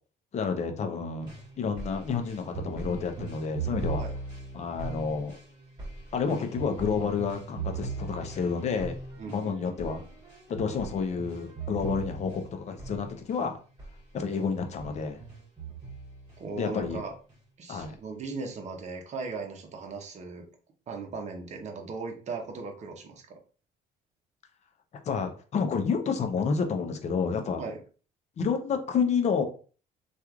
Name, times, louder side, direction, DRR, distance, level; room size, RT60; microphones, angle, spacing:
voice 1, 0.3-1.3 1.6-4.0 4.5-5.4 6.1-9.0 9.3-10.0 10.5-13.6 14.1-15.2 16.6-17.0 17.7-18.0 25.1-27.6 28.4-29.4, left 5 dB, 40° left, 5 dB, 0.6 m, -29 dB
sound 1, 1.2-13.4 13.8-14.0 14.3-16.4 16.8-17.4 17.8-17.9, right 4 dB, 25° right, 1.2 m, -39 dB
voice 2, 9.2-10.0 16.4-17.1 17.6-20.4 20.9-23.4 27.6-27.8, right 4 dB, 45° right, 3 dB, 0.7 m, -38 dB
3.0 x 2.4 x 2.3 m, 0.38 s
cardioid pair, 110°, 17 cm